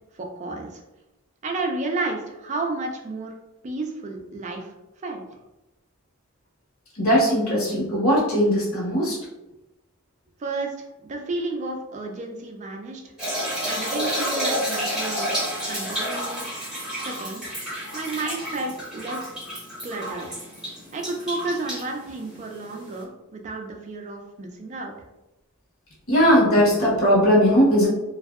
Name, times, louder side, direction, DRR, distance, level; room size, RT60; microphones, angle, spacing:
voice 1, 0.1-0.8 1.4-3.3 3.6-4.7 5.0-5.2 10.4-13.0 13.6-15.4 15.7-16.4 17.0-17.4 17.9-19.3 19.8-20.3 20.9-24.9, right 2 dB, 35° right, 2 dB, 0.3 m, -31 dB
voice 2, 6.9-9.2 26.1-27.9, equal, 85° left, -6 dB, 1.2 m, -19 dB
sound 1, 13.2-23.0, equal, 5° right, 1.1 m, -30 dB
2.6 x 2.2 x 2.3 m, 0.97 s
head